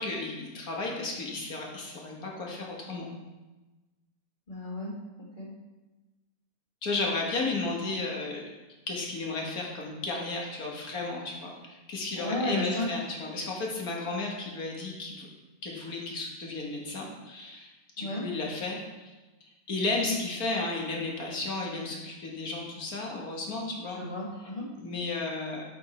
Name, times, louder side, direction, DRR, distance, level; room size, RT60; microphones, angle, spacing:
voice 1, 0.0-3.1 6.8-8.4 8.9-15.3 15.6-17.7 18.0-19.1 19.7-24.0 24.7-25.6, left 3 dB, 70° left, -1 dB, 2.0 m, -33 dB
voice 2, 4.5-4.9 5.4-5.5 12.1-13.0 18.0-18.2 23.9-24.7, left 1 dB, 30° left, -6 dB, 2.2 m, -33 dB
9.2 x 5.3 x 4.4 m, 1.2 s
omnidirectional pair, 1.6 m